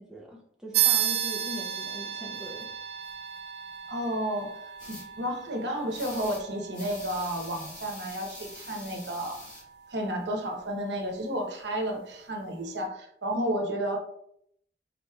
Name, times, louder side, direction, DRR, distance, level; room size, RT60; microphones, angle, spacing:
voice 1, 0.0-2.7 13.3-13.6, left 1 dB, 5° right, -1 dB, 0.6 m, -40 dB
sound 1, 0.7-10.7, right 11 dB, 70° right, 0.3 m, -34 dB
voice 2, 3.9-9.5 9.9-14.0, right 1 dB, 85° right, 1 dB, 1.0 m, -32 dB
sound 2, 4.8-5.0 5.9-6.4 6.7-9.6, left 1 dB, 50° left, 1.7 m, -45 dB
5.0 x 3.9 x 2.3 m, 0.71 s
head